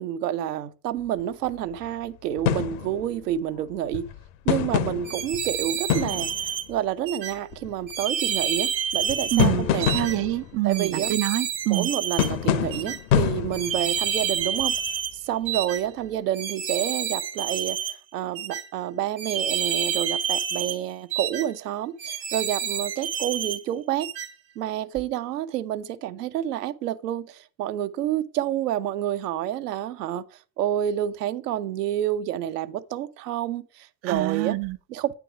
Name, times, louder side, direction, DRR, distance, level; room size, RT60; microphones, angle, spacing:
voice 1, 0.0-4.0 4.4-9.9 10.6-11.2 11.7-14.7 15.1-24.1 24.6-30.2 30.6-34.6 34.9-35.1, right 11 dB, 70° right, 0.8 m, -29 dB
sound 1, 1.2-1.6 1.8-1.9 2.4-3.4 3.7-6.7 7.5-7.9 8.6-8.7 9.0-11.1 12.2-14.9 15.5-15.6, left 9 dB, 55° left, 0.9 m, -27 dB
sound 2, 5.0-6.6 7.1-7.3 7.9-9.5 9.8-10.2 10.7-12.3 12.7-13.0 13.5-15.1 15.5-15.8 16.3-17.9 18.4-18.6 19.2-20.8 21.1-21.5 22.0-23.6 24.0-24.3, right 8 dB, 85° right, 1.3 m, -29 dB
voice 2, 9.3-11.9 34.0-34.8, right 17 dB, 30° right, 0.4 m, -26 dB
9.1 x 4.9 x 4.6 m
figure-of-eight pair, 70°, 50 cm